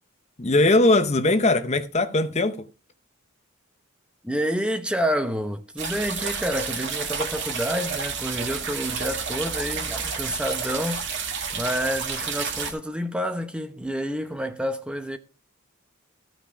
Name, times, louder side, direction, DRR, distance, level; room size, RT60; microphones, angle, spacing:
voice 1, 0.4-2.7, left 2 dB, 30° left, 0.7 m, -20 dB
voice 2, 4.2-11.1 11.5-15.2, equal, 5° right, 0.8 m, -28 dB
sound 1, 5.8-12.7, right 5 dB, 55° right, 2.3 m, -30 dB
14.5 x 5.8 x 5.1 m
head